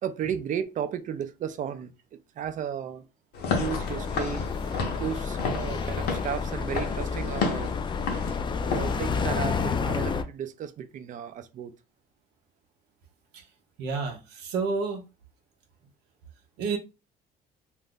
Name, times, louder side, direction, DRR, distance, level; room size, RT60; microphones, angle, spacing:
voice 1, 0.0-3.0 3.5-4.5 5.0-7.8 8.6-11.7, right 8 dB, 50° right, 0.4 m, -34 dB
Walk footsteps / Siren, 3.3-8.9, left 4 dB, 75° left, 0.8 m, -32 dB
sound 1, 3.5-10.2, left 5 dB, 30° left, 0.4 m, -30 dB
voice 2, 13.8-15.0 16.6-16.8, right 4 dB, 85° right, 0.7 m, -30 dB
2.5 x 2.5 x 3.6 m
cardioid pair, 110°, 17 cm